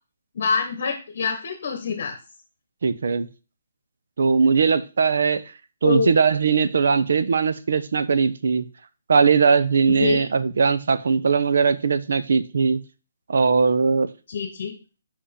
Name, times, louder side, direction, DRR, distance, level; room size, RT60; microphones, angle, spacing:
voice 1, 0.3-2.2 5.8-6.1 9.9-10.2 14.3-14.7, left 5 dB, 45° left, 6 dB, 1.0 m, -25 dB
voice 2, 2.8-3.3 4.2-5.4 5.8-8.6 9.1-12.8 13.3-14.1, right 5 dB, 65° right, 13 dB, 0.7 m, -20 dB
5.1 x 5.0 x 5.1 m, 0.33 s
hypercardioid pair, 170°, 0 cm